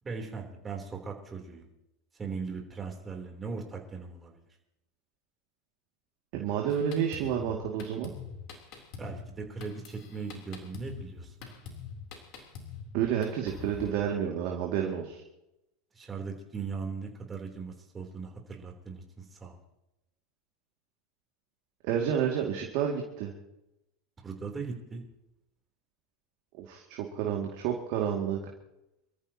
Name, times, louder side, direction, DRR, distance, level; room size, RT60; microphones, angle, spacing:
voice 1, 0.0-1.7 2.1-4.4 9.0-11.3 15.9-19.6 24.2-25.0, right 5 dB, 20° right, 2 dB, 3.5 m, -39 dB
voice 2, 6.3-8.1 12.9-15.2 21.8-23.3 26.6-28.4, right 8 dB, 60° right, 0 dB, 2.3 m, -30 dB
Drum kit, 6.7-13.9, left 6 dB, 55° left, 3.5 m, -45 dB
26.0 x 14.0 x 3.0 m, 0.89 s
hypercardioid pair, 90°, 0 cm